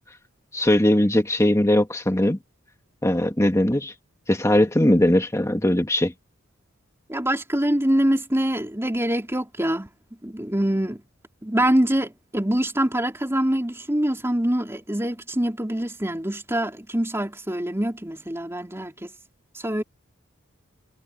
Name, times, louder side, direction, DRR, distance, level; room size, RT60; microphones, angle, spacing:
voice 1, 0.5-2.4 3.0-3.9 4.3-6.1, left 1 dB, 15° left, 1.9 m, -20 dB
voice 2, 7.1-9.9 10.2-11.0 11.4-19.1 19.5-19.8, right 1 dB, 10° right, 4.0 m, -24 dB
head